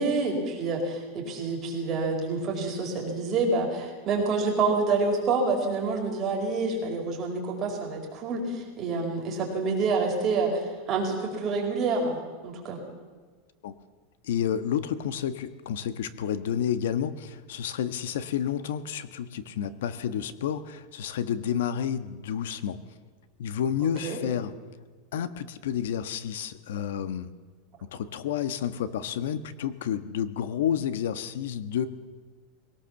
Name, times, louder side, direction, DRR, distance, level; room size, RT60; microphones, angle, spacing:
voice 1, 0.0-12.8 24.0-24.2, right 3 dB, 25° right, 0 dB, 4.9 m, -27 dB
voice 2, 14.2-22.8 23.4-24.5 25.1-27.3 27.8-31.9, left 9 dB, 85° left, 12 dB, 1.4 m, -30 dB
22.0 x 18.0 x 7.2 m, 1.5 s
supercardioid pair, 165°, 0 cm